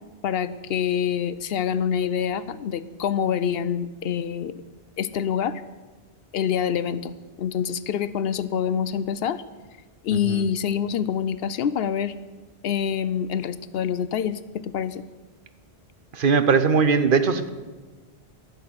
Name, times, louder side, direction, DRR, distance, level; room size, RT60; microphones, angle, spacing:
voice 1, 0.2-4.5 5.0-5.6 6.3-9.4 10.0-12.1 12.6-15.0, left 8 dB, 70° left, 14 dB, 0.8 m, -26 dB
voice 2, 10.1-10.4 16.1-17.5, right 5 dB, 55° right, 10 dB, 0.9 m, -20 dB
12.5 x 6.8 x 9.5 m, 1.3 s
omnidirectional pair, 1.1 m